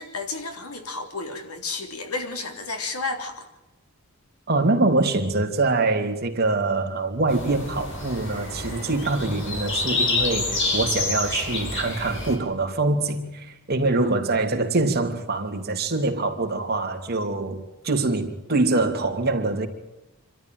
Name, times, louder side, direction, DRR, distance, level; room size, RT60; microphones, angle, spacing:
voice 1, 0.0-3.5 13.9-14.2, left 3 dB, 90° left, 3.6 m, -32 dB
voice 2, 4.5-19.7, right 2 dB, 45° right, 2.9 m, -24 dB
sound 1, 7.3-12.4, left 3 dB, 60° left, 7.6 m, -28 dB
27.5 x 13.5 x 9.3 m
head